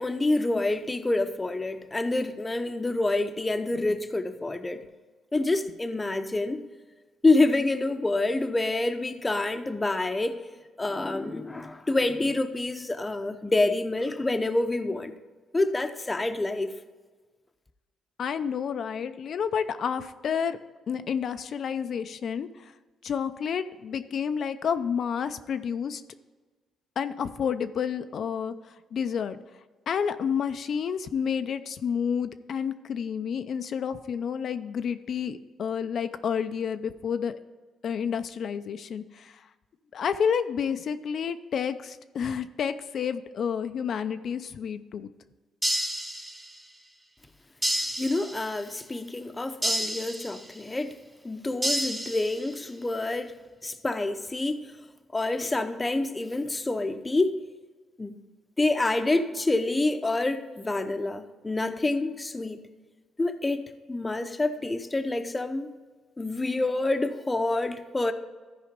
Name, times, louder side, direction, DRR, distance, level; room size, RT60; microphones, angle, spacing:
voice 1, 0.0-4.8 5.3-6.6 7.2-10.4 10.8-15.1 15.5-16.7 48.0-51.0 51.2-53.3 53.6-54.7 55.1-57.4 58.0-58.2 58.6-62.6 63.2-65.7 66.2-68.1, left 2 dB, 20° left, 0.7 m, -27 dB
voice 2, 18.2-20.6 20.9-22.5 23.0-26.0 27.0-28.5 28.9-29.4 29.9-37.4 37.8-39.3 39.9-45.1, left 7 dB, 60° left, 0.5 m, -30 dB
sound 1, 45.6-46.7 47.6-48.7 49.6-50.7 51.6-52.7, right 1 dB, 15° right, 1.1 m, -30 dB
13.5 x 4.9 x 5.2 m
cardioid pair, 90°, 0 cm